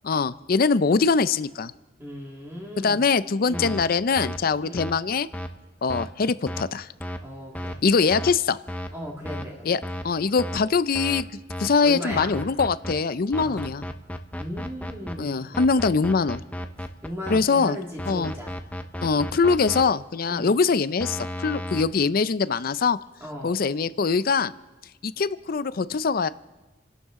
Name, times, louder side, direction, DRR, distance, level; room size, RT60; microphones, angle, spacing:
voice 1, 0.0-1.7 2.8-5.3 5.8-6.9 7.8-8.6 9.6-11.3 11.6-13.9 15.2-16.4 17.3-17.8 18.1-18.3 19.0-23.0 23.4-24.5 25.0-26.3, left 4 dB, 50° left, 15 dB, 0.5 m, -23 dB
voice 2, 2.0-3.0 3.4-3.8 4.6-4.9 7.2-7.8 8.9-9.9 11.8-12.4 13.3-13.8 14.4-15.6 17.0-18.6 20.3-20.6 23.2-23.6, equal, 15° right, -2 dB, 1.9 m, -37 dB
sound 1, 3.5-3.8 4.2-4.4 4.8-4.9 5.3-5.5 5.9-6.0 6.5-6.6 7.0-7.2 7.5-7.8 8.1-8.3 8.7-8.9 9.2-9.4 9.8-10.0 10.4-10.6 10.9-11.2 11.5-11.7 12.1-12.9 13.3-15.1 15.5-17.4 18.0-19.8 21.0-21.8, equal, 10° left, 0.8 m, -33 dB
29.0 x 12.0 x 3.7 m, 1.2 s
head